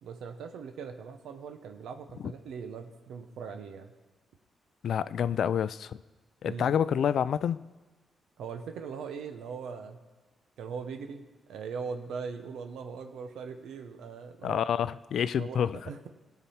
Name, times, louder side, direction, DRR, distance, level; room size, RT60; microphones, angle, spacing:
voice 1, 0.0-3.9 6.4-6.7 8.4-10.0 10.6-14.6 15.4-16.1, right 5 dB, 90° right, 6 dB, 0.7 m, -40 dB
voice 2, 4.8-6.0 6.4-7.6 14.4-15.8, left 8 dB, 70° left, 16 dB, 0.3 m, -28 dB
17.0 x 5.9 x 4.3 m, 1.2 s
cardioid pair, 80°, 0 cm